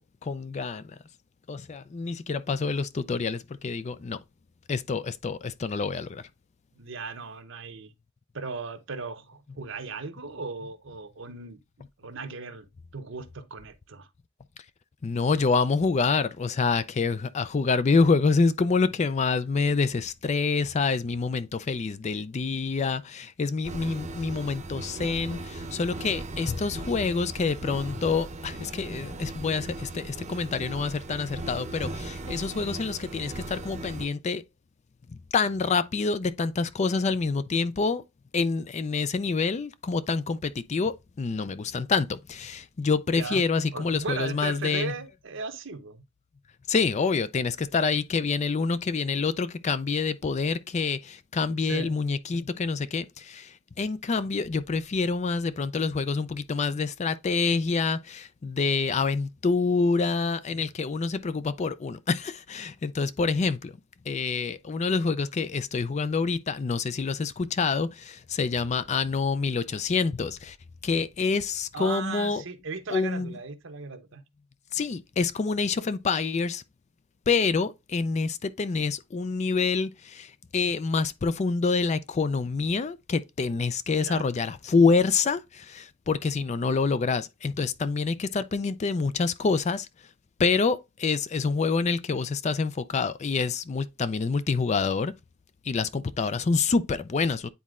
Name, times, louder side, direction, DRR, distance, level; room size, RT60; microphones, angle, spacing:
voice 1, 0.2-0.8 1.5-4.2 4.7-6.2 15.0-34.4 35.3-38.0 38.3-44.9 46.7-63.7 64.1-70.6 70.8-72.4 72.9-73.4 74.7-76.6 77.3-89.9 90.4-95.1 95.7-97.5, left 4 dB, 35° left, 0.4 m, -27 dB
voice 2, 6.8-7.9 8.3-11.6 12.0-12.7 12.9-14.1 43.1-43.4 43.7-46.0 51.6-51.9 71.7-74.2 84.0-84.2, right 4 dB, 65° right, 0.8 m, -37 dB
sound 1, 23.6-34.1, right 2 dB, 35° right, 0.7 m, -38 dB
9.3 x 4.2 x 2.4 m
head